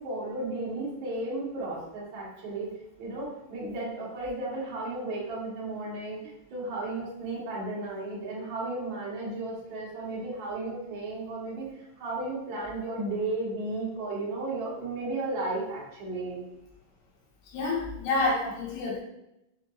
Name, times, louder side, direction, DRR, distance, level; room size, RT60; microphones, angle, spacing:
voice 1, 0.0-2.7 3.0-11.7 12.0-16.4, right 2 dB, 80° right, -6 dB, 1.1 m, -34 dB
voice 2, 17.5-19.0, left 3 dB, 90° left, -4 dB, 3.2 m, -28 dB
6.4 x 3.1 x 2.3 m, 0.85 s
omnidirectional pair, 4.5 m